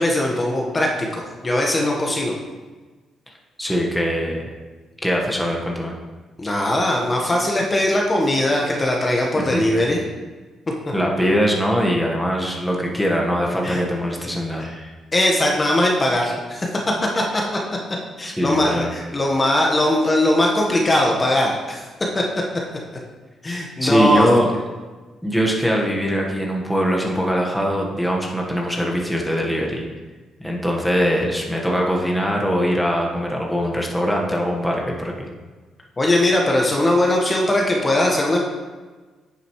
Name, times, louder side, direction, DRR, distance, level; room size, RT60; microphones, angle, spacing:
voice 1, 0.0-2.3 6.4-10.0 13.6-13.8 14.6-16.7 17.1-17.4 18.2-21.8 22.1-22.2 23.4-24.3 36.0-38.4, left 1 dB, 25° left, -1 dB, 1.3 m, -20 dB
voice 2, 3.6-4.4 5.0-5.9 9.3-9.6 10.9-14.7 18.4-18.9 23.8-24.5 25.2-29.9 30.4-35.3, equal, ahead, -2 dB, 1.4 m, -22 dB
10.0 x 6.9 x 3.1 m, 1.3 s
cardioid pair, 90°, 0 cm